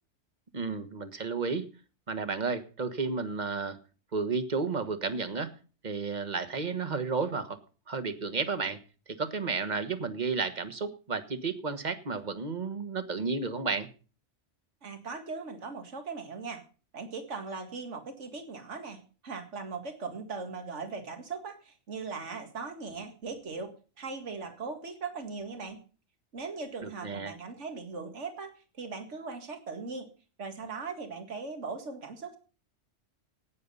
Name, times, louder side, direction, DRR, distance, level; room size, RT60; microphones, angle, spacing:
voice 1, 0.5-1.6 2.1-3.8 4.1-5.5 5.8-7.6 7.9-8.8 9.1-13.9 26.8-27.3, right 4 dB, 40° right, 11 dB, 1.4 m, -32 dB
voice 2, 14.8-16.6 16.9-25.8 26.3-30.1 30.4-32.4, right 4 dB, 80° right, 6 dB, 2.2 m, -39 dB
15.5 x 9.5 x 5.4 m, 0.37 s
omnidirectional pair, 1.2 m